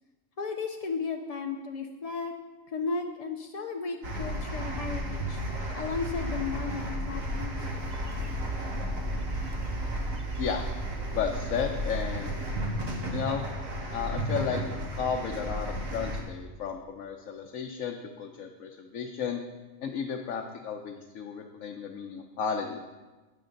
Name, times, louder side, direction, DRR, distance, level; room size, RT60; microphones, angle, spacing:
voice 1, 0.4-2.3 2.7-5.4 5.7-7.7, left 4 dB, 50° left, 3 dB, 0.4 m, -34 dB
sound 1, 4.0-16.2, equal, 80° right, 1.9 m, -33 dB
Bird, 6.3-12.8, right 2 dB, 45° right, 0.8 m, -43 dB
voice 2, 11.1-12.3 13.1-13.4 13.9-14.6 14.9-19.4 19.8-22.8, left 6 dB, 75° left, 2 dB, 1.2 m, -33 dB
13.0 x 8.7 x 3.9 m, 1.2 s
omnidirectional pair, 1.4 m